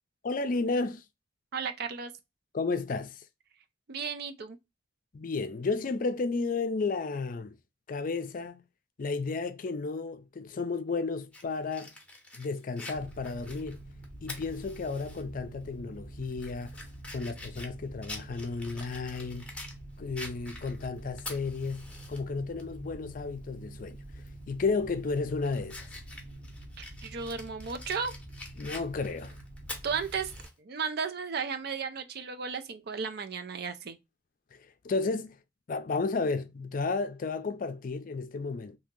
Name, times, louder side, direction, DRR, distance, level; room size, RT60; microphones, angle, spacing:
voice 1, 0.2-1.0 2.5-3.2 5.1-7.6 7.9-8.6 9.0-11.9 12.3-13.8 14.2-16.8 17.1-19.4 20.0-24.0 24.5-25.9 28.6-29.3 34.5-34.6 34.8-35.4 35.7-38.8, left 4 dB, 50° left, 0.4 m, -32 dB
voice 2, 1.5-2.1 3.9-4.6 26.8-28.1 29.8-30.3 30.6-34.0, right 5 dB, 60° right, 0.5 m, -34 dB
Fire, 11.3-15.2 15.6-15.7 16.2-19.8 20.2-22.2 22.6-22.7 24.2-24.4 24.9-30.5, left 2 dB, 5° left, 0.8 m, -46 dB
sound 1, 12.9-30.5, right 1 dB, 40° right, 0.9 m, -46 dB
2.8 x 2.8 x 3.6 m
head